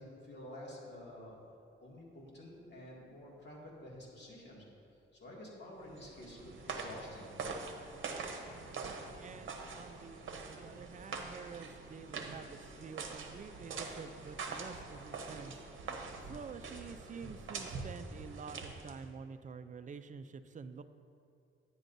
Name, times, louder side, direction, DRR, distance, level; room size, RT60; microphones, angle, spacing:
voice 1, 0.0-1.4 1.8-4.6 5.2-7.4, left 1 dB, 55° left, -4 dB, 2.1 m, -50 dB
sound 1, 5.8-19.1, right 4 dB, 70° right, 0.9 m, -44 dB
voice 2, 9.2-15.8 16.2-20.8, right 5 dB, 40° right, 11 dB, 0.4 m, -49 dB
9.9 x 9.6 x 2.6 m, 2.7 s
cardioid pair, 90°, 21 cm